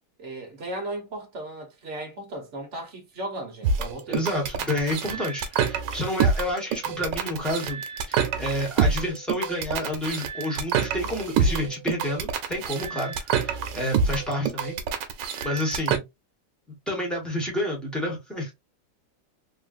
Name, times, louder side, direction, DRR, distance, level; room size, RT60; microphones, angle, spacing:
voice 1, 0.2-4.3 11.5-11.8 12.5-12.7, right 1 dB, 50° right, 1.1 m, -36 dB
sound 1, 3.6-16.0, right 6 dB, 80° right, 1.3 m, -26 dB
voice 2, 4.1-7.8 8.1-14.8 15.4-16.0 16.9-18.5, left 1 dB, ahead, 1.0 m, -29 dB
3.4 x 2.4 x 2.4 m
omnidirectional pair, 2.0 m